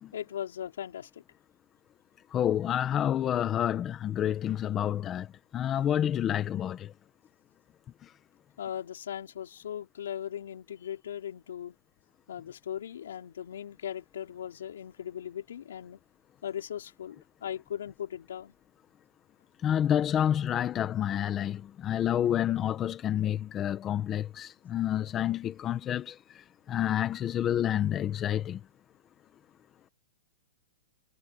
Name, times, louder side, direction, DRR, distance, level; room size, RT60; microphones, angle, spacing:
voice 1, 0.1-1.2 8.6-11.7 12.3-16.0 16.4-18.5, left 9 dB, 80° left, 4.5 m, -38 dB
voice 2, 2.3-5.3 5.5-6.9 19.6-28.6, left 10 dB, 15° left, 0.9 m, -29 dB
supercardioid pair, 175°, 0 cm